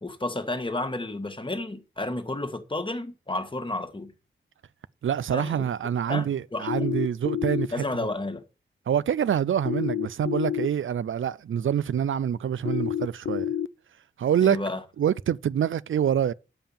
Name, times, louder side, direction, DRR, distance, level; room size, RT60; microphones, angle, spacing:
voice 1, 0.0-4.1 5.3-5.7 6.1-6.9 7.7-8.4 14.4-14.8, left 2 dB, 25° left, 1.5 m, -31 dB
voice 2, 5.0-7.8 8.9-13.5 14.2-14.6 15.0-16.3, right 9 dB, 75° right, 0.4 m, -26 dB
sound 1, 6.7-7.7 9.6-10.7 12.6-13.7, left 10 dB, 75° left, 0.4 m, -28 dB
9.0 x 5.6 x 7.0 m
wide cardioid pair, 85°, 20 cm